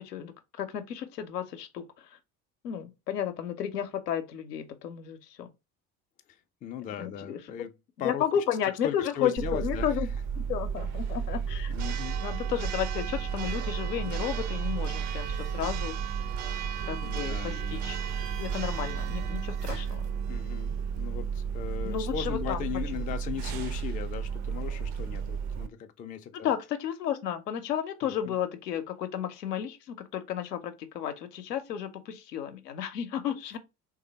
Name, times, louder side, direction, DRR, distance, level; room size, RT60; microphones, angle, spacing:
voice 1, 0.0-2.1 2.6-5.5 7.0-7.7 8.0-10.1 10.4-11.7 12.2-16.1 16.9-18.0 18.4-20.1 21.8-22.6 26.4-33.6, left 9 dB, 80° left, 0.7 m, -33 dB
voice 2, 6.6-7.7 8.0-8.3 8.8-10.0 11.7-12.2 17.0-17.8 20.3-26.5 28.0-28.3, left 9 dB, 20° left, 0.3 m, -37 dB
Church bell, 9.4-25.7, right 7 dB, 40° right, 0.5 m, -32 dB
sound 1, 15.2-20.1, right 3 dB, 75° right, 1.2 m, -48 dB
3.3 x 2.7 x 3.8 m
figure-of-eight pair, 60°, 47 cm